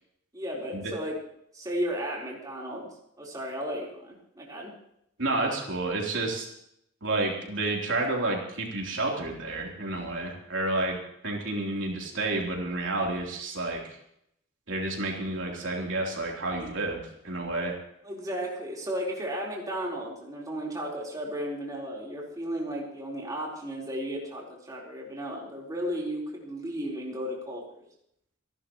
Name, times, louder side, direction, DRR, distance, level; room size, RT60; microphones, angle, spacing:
voice 1, 0.3-1.2 1.5-2.9 3.2-4.7 18.0-27.6, equal, 20° right, -3 dB, 4.0 m, -34 dB
voice 2, 5.2-6.5 7.0-11.0 11.2-14.0 14.7-17.8, right 2 dB, 65° right, -1 dB, 3.5 m, -30 dB
27.5 x 12.0 x 3.1 m, 0.75 s
head